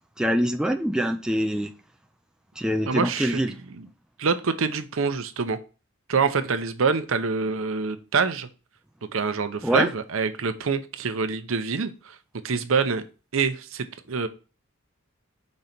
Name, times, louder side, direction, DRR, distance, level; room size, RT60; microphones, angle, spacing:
voice 1, 0.2-1.7 2.6-3.5 9.6-9.9, equal, 5° right, 0.3 m, -24 dB
voice 2, 2.8-3.9 4.2-5.6 6.1-8.5 9.1-12.2 12.4-13.0 13.3-14.3, right 5 dB, 65° right, 0.7 m, -26 dB
5.3 x 3.9 x 5.8 m
head